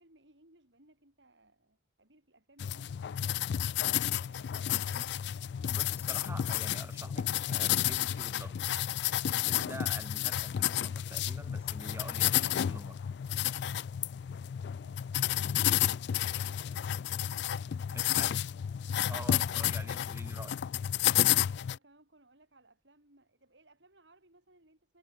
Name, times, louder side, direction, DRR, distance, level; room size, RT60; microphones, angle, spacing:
voice 1, 0.0-3.1 4.0-4.7 14.5-16.1 17.3-17.9 19.5-19.6 21.3-25.0, right 2 dB, 80° right, 7.7 m, -63 dB
sound 1, 2.6-21.8, left 11 dB, 65° left, 0.3 m, -31 dB
voice 2, 5.7-8.6 9.3-13.0 17.9-18.4 19.1-20.6, right 1 dB, 15° right, 2.9 m, -47 dB
head